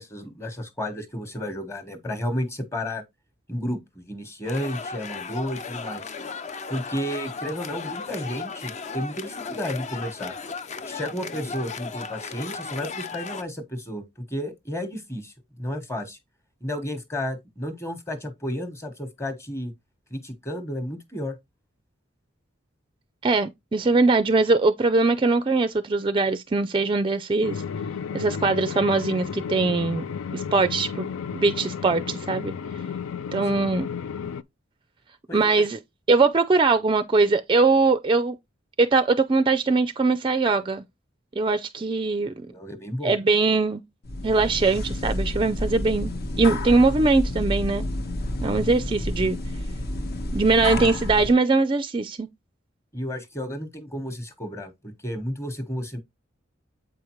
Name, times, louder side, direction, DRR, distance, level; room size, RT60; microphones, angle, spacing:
voice 1, 0.0-3.0 3.5-6.0 6.7-10.3 10.9-16.2 16.6-19.7 20.1-21.4 35.3-35.7 42.3-43.2 52.9-56.0, equal, 15° left, 1.1 m, -32 dB
sound 1, 4.4-13.4, left 4 dB, 35° left, 0.5 m, -36 dB
voice 2, 23.2-27.6 28.1-30.0 30.3-31.1 31.3-32.5 33.3-33.9 35.3-35.8 36.1-38.4 38.8-40.8 41.4-42.3 43.0-43.8 44.2-46.1 46.4-47.9 48.4-49.4 50.3-52.3, right 3 dB, 25° right, 0.4 m, -21 dB
sound 2, 27.4-34.4, left 7 dB, 90° left, 0.4 m, -33 dB
sound 3, 44.0-51.3, left 1 dB, 50° left, 1.0 m, -29 dB
7.8 x 5.0 x 3.0 m
head